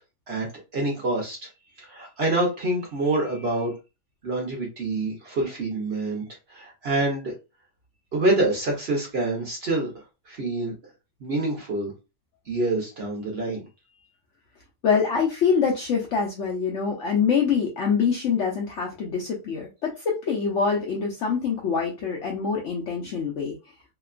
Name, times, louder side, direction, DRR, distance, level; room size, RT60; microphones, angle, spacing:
voice 1, 0.7-1.4 1.8-3.8 4.2-6.2 6.5-7.3 8.1-9.9 10.3-10.7 11.2-11.9 12.5-13.7, right 2 dB, 50° right, -1 dB, 0.8 m, -26 dB
voice 2, 14.8-23.6, left 6 dB, 65° left, -2 dB, 0.7 m, -25 dB
2.9 x 2.2 x 2.4 m, 0.27 s
omnidirectional pair, 1.7 m